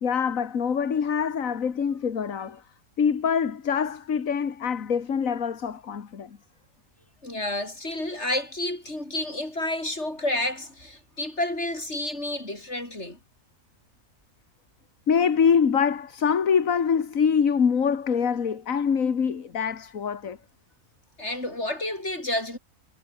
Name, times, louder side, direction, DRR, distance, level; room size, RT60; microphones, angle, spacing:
voice 1, 0.0-2.6 3.0-6.4 15.1-20.4, left 6 dB, 75° left, 2.0 m, -24 dB
voice 2, 7.2-13.2 21.2-22.6, left 1 dB, 55° left, 7.4 m, -30 dB
omnidirectional pair, 1.4 m